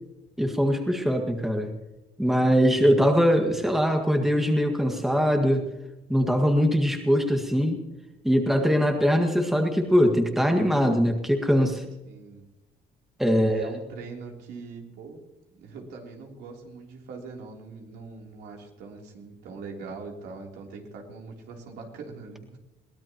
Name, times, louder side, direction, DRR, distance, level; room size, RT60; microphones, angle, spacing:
voice 1, 0.4-1.7 2.2-5.7 6.1-7.8 8.2-11.8 13.2-13.7, equal, ahead, 4 dB, 1.8 m, -22 dB
voice 2, 12.0-12.5 13.3-15.2 15.6-22.6, right 4 dB, 75° right, 0 dB, 3.4 m, -42 dB
22.5 x 17.0 x 3.0 m, 0.97 s
cardioid pair, 110°, 17 cm